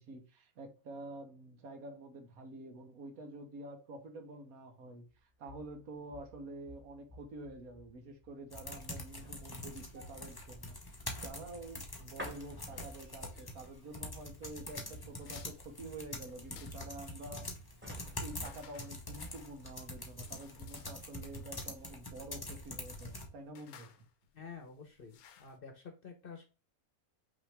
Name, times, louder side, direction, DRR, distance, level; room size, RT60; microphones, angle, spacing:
voice 1, 0.0-17.5 18.0-23.9, right 2 dB, 75° right, 1.4 m, -48 dB
sound 1, 5.1-19.4 19.8-20.0, left 1 dB, 10° right, 1.0 m, -55 dB
sound 2, 8.5-23.3, left 2 dB, 25° left, 0.6 m, -45 dB
sound 3, 14.7-25.6, left 8 dB, 80° left, 1.1 m, -60 dB
voice 2, 24.3-26.4, left 5 dB, 45° left, 0.9 m, -50 dB
5.5 x 2.9 x 3.3 m
omnidirectional pair, 1.5 m